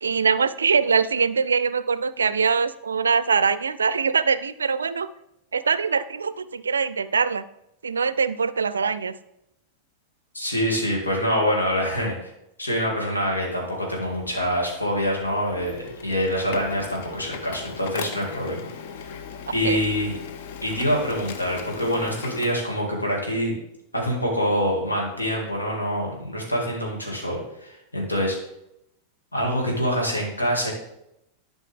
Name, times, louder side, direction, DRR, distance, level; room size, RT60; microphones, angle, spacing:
voice 1, 0.0-5.1 5.5-7.5 7.8-9.1 19.6-19.8, right 5 dB, 70° right, 15 dB, 0.4 m, -23 dB
voice 2, 10.3-12.3 12.6-18.6 19.0-19.1 19.5-20.1 20.6-23.6 23.9-28.4 29.3-30.7, equal, 80° left, -1 dB, 2.5 m, -25 dB
Printer, 13.4-22.5, left 7 dB, 50° left, 0.8 m, -39 dB
11.5 x 5.2 x 3.7 m, 0.83 s
figure-of-eight pair, 90°, 0 cm